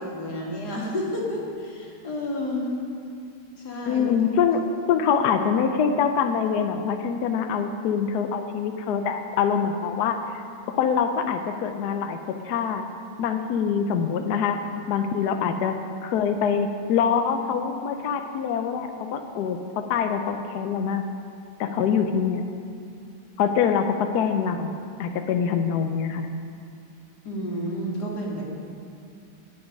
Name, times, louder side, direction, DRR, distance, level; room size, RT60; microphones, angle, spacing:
voice 1, 0.0-2.7 3.6-4.1 27.2-28.4, left 1 dB, 45° left, -3 dB, 2.7 m, -30 dB
voice 2, 3.9-4.6 4.9-10.4 10.7-12.2 12.4-12.8 13.2-14.6 14.9-15.8 16.0-21.0 21.6-22.4 23.4-24.7 25.0-26.3, left 7 dB, 75° left, 6 dB, 0.9 m, -24 dB
18.5 x 7.1 x 5.3 m, 2.4 s
omnidirectional pair, 2.4 m